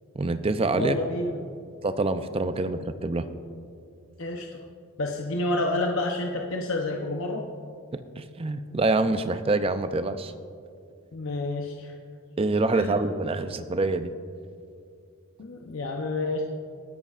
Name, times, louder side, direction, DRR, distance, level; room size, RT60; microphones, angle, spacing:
voice 1, 0.1-0.9 1.8-3.3 7.9-10.3 12.4-14.1, right 2 dB, 25° right, 11 dB, 0.4 m, -26 dB
voice 2, 0.7-1.4 4.2-4.6 5.0-7.4 11.1-11.9 12.7-12.9 15.4-16.4, left 2 dB, 60° left, 0 dB, 0.8 m, -29 dB
21.0 x 11.0 x 2.4 m, 2.4 s
head